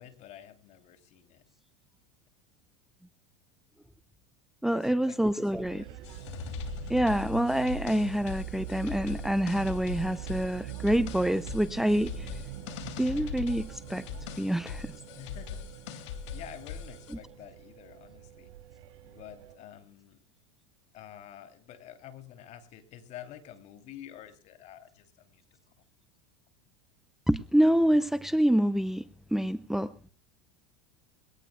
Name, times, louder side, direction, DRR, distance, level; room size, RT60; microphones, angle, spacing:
voice 1, 0.0-1.4 4.7-5.2 5.7-5.9 15.2-15.6 15.9-18.5 19.0-20.2 20.9-25.4, left 11 dB, 50° left, 8 dB, 3.2 m, -49 dB
voice 2, 4.6-5.8 6.9-12.4 13.0-14.0 14.4-14.9 17.1-17.2 27.3-30.1, right 1 dB, ahead, 14 dB, 0.7 m, -27 dB
sound 1, 5.5-19.5, right 10 dB, 70° right, 6.0 m, -44 dB
sound 2, 6.0-17.1, left 7 dB, 75° left, 3.0 m, -41 dB
23.0 x 18.0 x 2.3 m, 0.40 s
hypercardioid pair, 105°, 15 cm